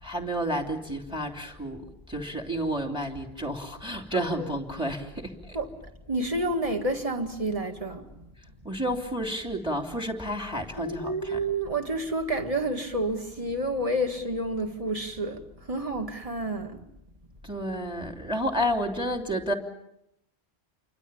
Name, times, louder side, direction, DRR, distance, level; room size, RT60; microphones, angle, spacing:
voice 1, 0.0-1.8 2.1-5.3 8.6-11.4 17.4-19.5, equal, 5° right, 3.2 m, -30 dB
voice 2, 4.1-4.5 5.5-8.3 8.7-8.8 10.8-16.8, right 1 dB, 35° right, 2.1 m, -30 dB
28.5 x 24.5 x 7.1 m
omnidirectional pair, 1.1 m